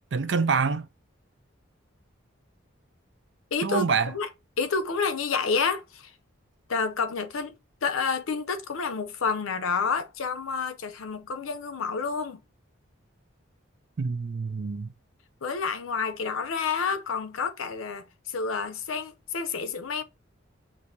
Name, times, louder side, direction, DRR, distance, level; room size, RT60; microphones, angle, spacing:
voice 1, 0.1-0.9 3.6-4.1 14.0-14.9, right 5 dB, 60° right, 0.5 m, -26 dB
voice 2, 3.5-4.3 4.6-6.1 6.7-12.4 15.4-20.0, left 5 dB, 90° left, 0.6 m, -29 dB
6.1 x 2.5 x 2.7 m
head